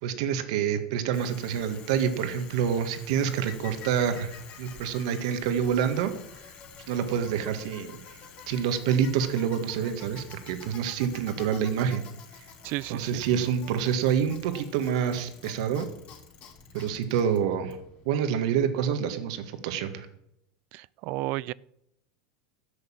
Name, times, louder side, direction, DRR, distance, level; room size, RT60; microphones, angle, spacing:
voice 1, 0.0-6.1 6.9-8.0 8.5-12.0 12.9-15.9 16.7-17.8 18.0-20.1, right 8 dB, 70° right, 1.7 m, -27 dB
Bicycle, 1.1-18.2, left 6 dB, 45° left, 3.3 m, -48 dB
voice 2, 12.6-13.2 20.7-21.5, right 19 dB, 55° right, 0.4 m, -33 dB
11.5 x 6.6 x 8.9 m
supercardioid pair, 125°, 3 cm